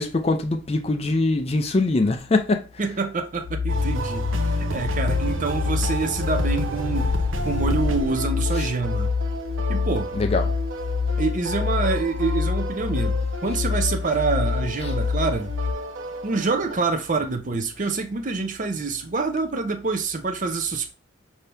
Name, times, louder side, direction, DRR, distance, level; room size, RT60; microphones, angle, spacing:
voice 1, 0.0-2.6 10.1-10.5, left 2 dB, 30° left, 0.4 m, -22 dB
voice 2, 2.8-4.3 4.5-7.1 7.4-9.1 9.7-10.1 11.2-15.5 16.2-20.9, right 4 dB, 40° right, 0.6 m, -26 dB
sound 1, 3.3-15.7, left 5 dB, 65° left, 0.7 m, -26 dB
sound 2, 3.7-16.8, right 1 dB, 85° right, 0.7 m, -32 dB
5.6 x 2.8 x 3.3 m
head